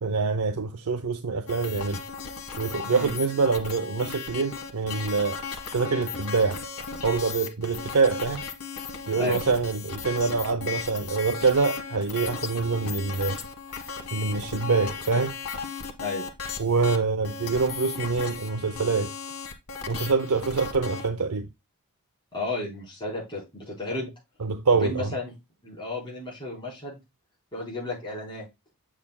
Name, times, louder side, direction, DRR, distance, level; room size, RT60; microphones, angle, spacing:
voice 1, 0.0-2.0 2.6-5.4 5.7-6.6 7.0-8.4 9.1-13.4 14.1-15.3 16.6-19.1 19.9-21.5 24.4-25.1, right 4 dB, 85° right, 0.7 m, -25 dB
sound 1, 1.5-21.1, left 5 dB, 85° left, 1.2 m, -36 dB
voice 2, 9.2-9.5 16.0-16.2 22.3-24.1 24.7-25.3 25.6-27.0 27.5-28.4, left 2 dB, 20° left, 4.0 m, -33 dB
7.3 x 7.1 x 2.2 m
head